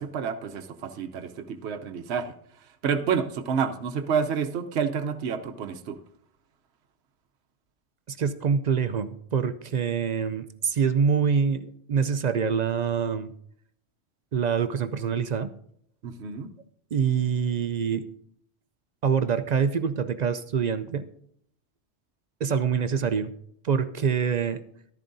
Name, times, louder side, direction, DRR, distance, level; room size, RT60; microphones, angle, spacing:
voice 1, 0.0-6.0 16.0-16.5, right 6 dB, 70° right, 7 dB, 1.0 m, -29 dB
voice 2, 8.1-13.3 14.3-15.5 16.9-18.1 19.0-21.1 22.4-23.3 23.6-24.6, right 6 dB, 55° right, 11 dB, 0.5 m, -25 dB
14.0 x 12.0 x 2.6 m, 0.69 s
omnidirectional pair, 1.2 m